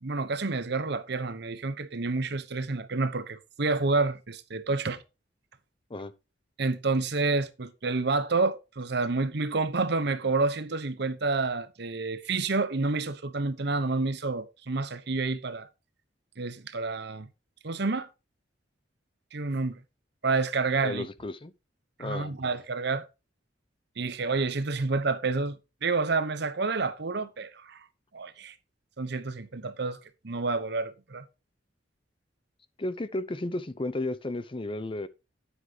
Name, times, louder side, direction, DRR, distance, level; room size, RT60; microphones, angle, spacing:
voice 1, 0.0-5.0 6.6-15.7 16.4-17.3 17.6-18.1 19.3-19.8 20.2-21.1 22.0-23.1 24.0-27.8 28.1-28.5 29.0-31.3, right 3 dB, 60° right, 0.9 m, -29 dB
voice 2, 20.8-21.5 22.0-22.3 32.8-35.1, left 2 dB, 30° left, 0.7 m, -33 dB
9.9 x 8.1 x 2.9 m
head